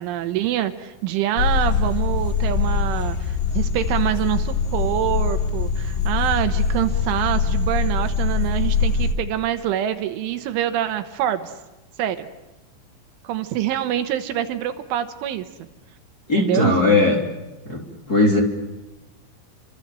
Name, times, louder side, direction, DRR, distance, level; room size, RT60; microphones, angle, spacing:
voice 1, 0.0-11.5 12.0-12.3 13.3-15.5 16.3-16.8, right 11 dB, 75° right, 9 dB, 3.5 m, -25 dB
sound 1, 1.4-9.1, left 5 dB, 75° left, 4.5 m, -23 dB
voice 2, 16.3-17.2 17.6-18.4, left 2 dB, 20° left, -1 dB, 3.1 m, -18 dB
30.0 x 26.0 x 7.6 m, 1.0 s
omnidirectional pair, 5.8 m